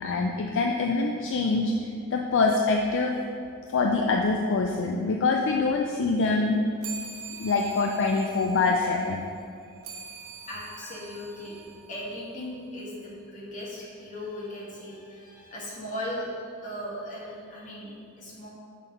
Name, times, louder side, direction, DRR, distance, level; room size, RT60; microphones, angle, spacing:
voice 1, 0.0-3.1 3.7-6.6 7.4-9.3, left 3 dB, 60° left, 2 dB, 0.4 m, -25 dB
sound 1, 6.8-12.6, right 5 dB, 70° right, 0.7 m, -44 dB
voice 2, 10.5-11.6 11.9-18.5, left 1 dB, 35° left, -5 dB, 1.6 m, -38 dB
6.3 x 3.8 x 5.2 m, 2.4 s
head